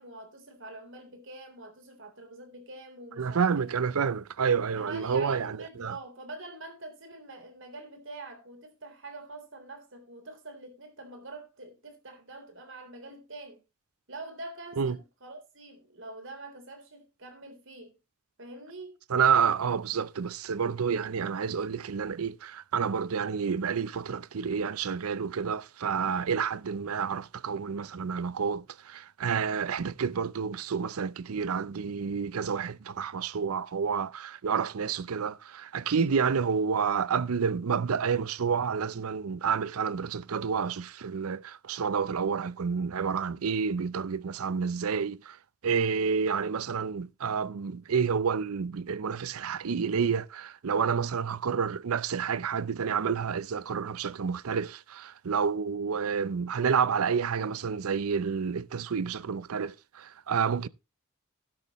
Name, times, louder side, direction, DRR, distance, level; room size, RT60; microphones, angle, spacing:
voice 1, 0.0-3.7 4.8-13.6 14.1-17.9 18.4-18.9, right 2 dB, 60° right, 3.7 m, -45 dB
voice 2, 3.2-6.0 14.8-15.0 19.1-45.4 45.6-60.7, right 6 dB, 85° right, 0.5 m, -29 dB
12.5 x 11.0 x 3.1 m
head